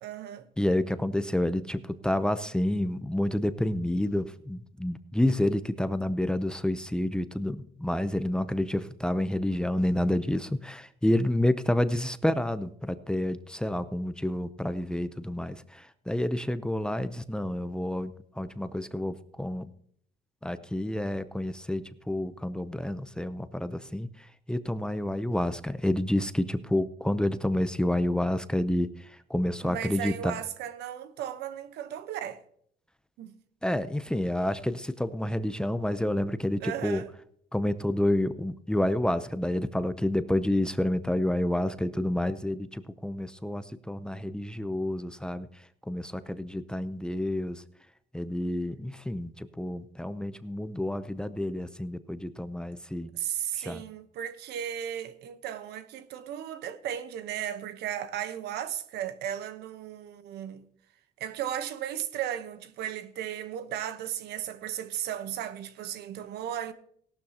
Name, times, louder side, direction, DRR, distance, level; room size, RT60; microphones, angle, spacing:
voice 1, 0.0-0.5 29.6-32.4 33.2-33.4 36.6-37.1 53.1-60.6 61.2-66.7, right 10 dB, 75° right, 1.0 m, -35 dB
voice 2, 0.6-19.7 20.4-24.1 24.5-30.4 33.6-37.0 37.5-45.5 45.9-47.6 48.1-53.1 53.6-53.8, left 1 dB, 5° left, 0.6 m, -29 dB
17.0 x 12.0 x 2.9 m
cardioid pair, 110°, 17 cm